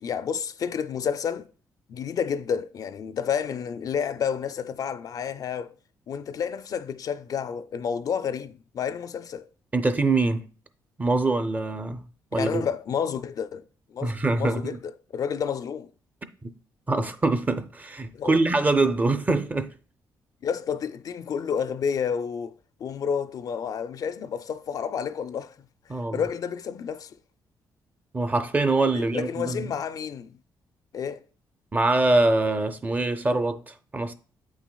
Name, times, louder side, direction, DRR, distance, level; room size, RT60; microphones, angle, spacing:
voice 1, 0.0-1.5 1.9-5.7 6.1-9.5 12.3-13.6 13.9-15.9 18.1-18.4 20.4-22.5 22.8-25.5 26.1-27.1 28.9-30.4 30.9-31.2, left 7 dB, 55° left, 0.4 m, -30 dB
voice 2, 9.7-10.4 11.0-12.0 12.3-12.7 14.0-14.8 16.4-16.5 16.9-19.7 25.9-26.3 28.1-29.7 31.7-34.1, right 2 dB, 20° right, 0.5 m, -24 dB
8.2 x 6.0 x 2.3 m
cardioid pair, 110°, 8 cm